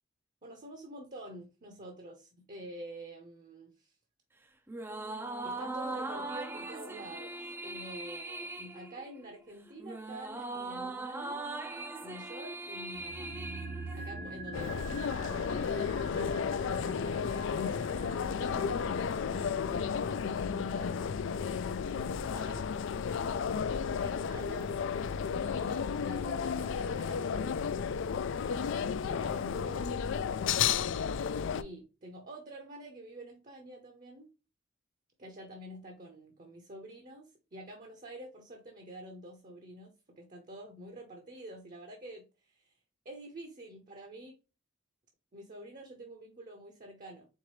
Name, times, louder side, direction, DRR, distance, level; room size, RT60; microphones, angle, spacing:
voice 1, 0.4-3.9 5.4-11.4 12.0-13.3 13.9-21.1 21.9-22.7 23.9-24.7 25.4-27.7 28.3-28.7 29.0-30.5 31.5-34.3 35.2-42.7 43.0-44.3 45.3-47.3, right 1 dB, 40° right, 4 dB, 0.8 m, -48 dB
sound 1, 4.7-14.4, right 2 dB, 10° right, 0.4 m, -40 dB
sound 2, 12.9-23.2 23.4-23.5, right 2 dB, 65° right, 1.2 m, -46 dB
sound 3, 14.5-31.6, left 6 dB, 65° left, 0.3 m, -33 dB
4.6 x 3.8 x 3.1 m, 0.31 s
head